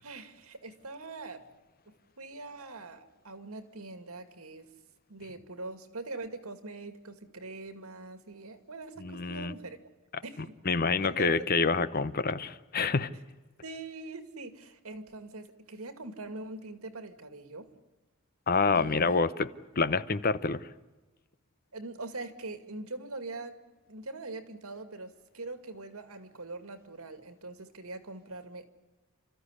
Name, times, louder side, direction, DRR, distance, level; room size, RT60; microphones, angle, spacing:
voice 1, 0.0-1.5 1.9-4.7 5.1-9.9 10.2-10.6 11.0-11.4 13.1-13.2 13.6-17.7 18.7-19.2 21.7-28.6, right 2 dB, 85° right, 2.2 m, -43 dB
voice 2, 9.0-9.5 10.7-13.1 18.5-19.5 19.8-20.7, left 4 dB, 45° left, 0.8 m, -27 dB
30.0 x 14.0 x 9.8 m
head